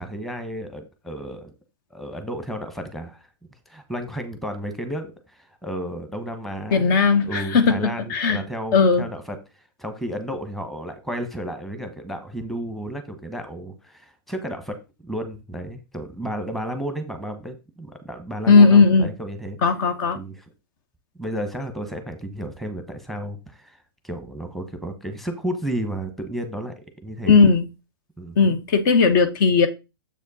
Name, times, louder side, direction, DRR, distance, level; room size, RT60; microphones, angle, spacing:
voice 1, 0.0-1.5 1.9-3.3 3.7-7.0 7.2-9.4 9.8-19.6 20.1-20.3 21.1-23.8 24.0-26.7 27.0-27.4 28.2-28.6, equal, ahead, 1.1 m, -32 dB
voice 2, 6.7-8.4 8.7-9.0 18.5-19.1 19.6-20.2 27.3-27.6 28.4-29.7, left 4 dB, 55° left, 1.1 m, -17 dB
7.2 x 5.0 x 4.1 m
hypercardioid pair, 135°, 13 cm